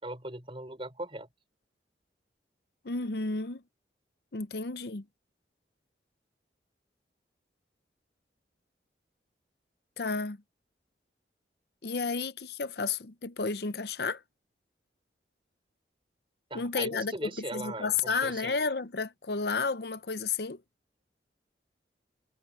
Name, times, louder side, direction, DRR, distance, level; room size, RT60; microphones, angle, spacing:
voice 1, 0.0-1.3 16.5-18.6, right 2 dB, 30° right, 5.6 m, -39 dB
voice 2, 2.8-3.6 4.3-5.0 10.0-10.4 11.8-14.2 16.5-17.1 17.5-20.6, left 4 dB, 65° left, 0.7 m, -32 dB
head